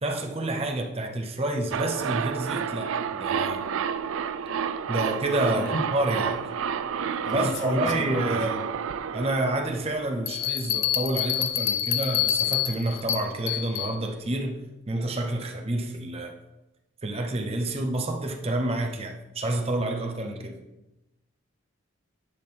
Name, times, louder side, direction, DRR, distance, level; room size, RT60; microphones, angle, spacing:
voice 1, 0.0-3.7 4.9-6.5 7.3-8.7 9.1-16.3 17.0-20.6, right 1 dB, 30° right, 0.7 m, -29 dB
sound 1, 1.7-10.5 10.8-10.9, right 7 dB, 80° right, 0.4 m, -30 dB
voice 2, 7.2-8.4, left 1 dB, 60° left, 1.2 m, -32 dB
sound 2, 10.3-13.9, left 11 dB, 80° left, 0.8 m, -27 dB
10.5 x 3.8 x 6.0 m
head